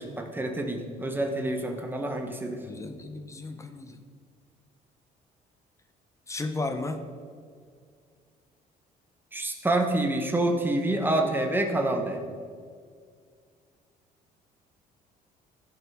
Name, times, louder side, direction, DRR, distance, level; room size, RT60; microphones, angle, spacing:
voice 1, 0.0-2.6 9.3-12.2, right 1 dB, 10° right, 3 dB, 1.1 m, -27 dB
voice 2, 2.7-4.0 6.3-7.0, left 2 dB, 15° left, 7 dB, 0.8 m, -34 dB
14.5 x 5.5 x 3.6 m, 2.1 s
cardioid pair, 110°, 17 cm